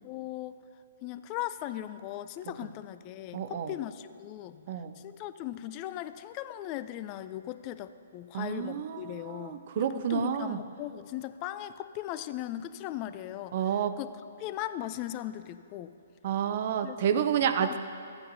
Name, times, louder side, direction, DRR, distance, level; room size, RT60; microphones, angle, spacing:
voice 1, 0.0-0.6 1.0-13.6 14.0-14.1 14.4-15.9 16.8-17.8, left 13 dB, 30° left, 13 dB, 0.3 m, -38 dB
voice 2, 3.3-3.7 4.7-4.9 8.3-10.6 13.5-14.0 16.2-17.8, right 8 dB, 50° right, 10 dB, 0.5 m, -29 dB
14.0 x 8.9 x 2.7 m, 2.3 s
figure-of-eight pair, 125°, 0 cm